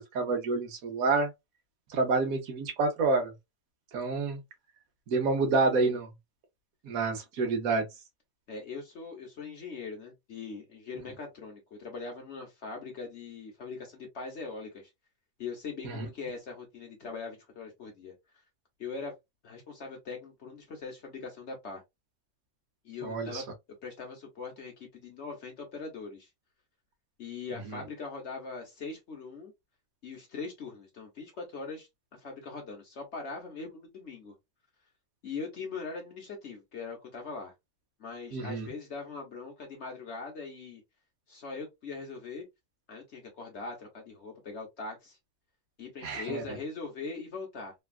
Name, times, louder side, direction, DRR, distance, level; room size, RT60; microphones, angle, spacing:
voice 1, 0.0-1.3 1.9-3.3 3.9-4.4 5.1-6.1 6.8-7.8 15.8-16.1 23.0-23.4 38.3-38.7 46.0-46.4, right 3 dB, 75° right, 1.2 m, -28 dB
voice 2, 8.5-14.9 15.4-18.1 18.8-19.1 19.4-21.8 22.8-23.4 23.8-26.3 27.2-29.5 30.0-31.9 32.2-34.4 35.2-37.5 38.0-40.8 41.3-42.4 42.9-45.2 45.8-47.7, left 4 dB, 55° left, 1.0 m, -41 dB
3.3 x 2.3 x 2.2 m
omnidirectional pair, 1.5 m